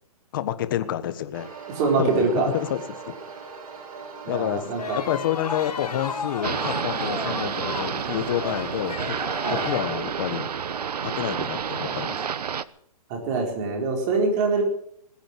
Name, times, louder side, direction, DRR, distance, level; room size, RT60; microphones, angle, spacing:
voice 1, 0.3-1.5 2.0-3.1 4.3-4.6 4.9-9.1 9.5-10.5 11.0-12.2, left 11 dB, 35° left, 11 dB, 1.3 m, -29 dB
sound 1, 1.3-10.0, right 5 dB, 65° right, 4.3 m, -40 dB
voice 2, 1.7-2.5 4.3-5.0 9.4-9.6 13.1-14.6, right 4 dB, 25° right, 1 dB, 4.3 m, -24 dB
sound 2, 4.8-9.8, left 6 dB, 90° left, 3.7 m, -34 dB
sound 3, 6.4-12.6, right 7 dB, 80° right, 1.0 m, -29 dB
20.5 x 9.1 x 7.6 m, 0.66 s
hypercardioid pair, 170°, 20 cm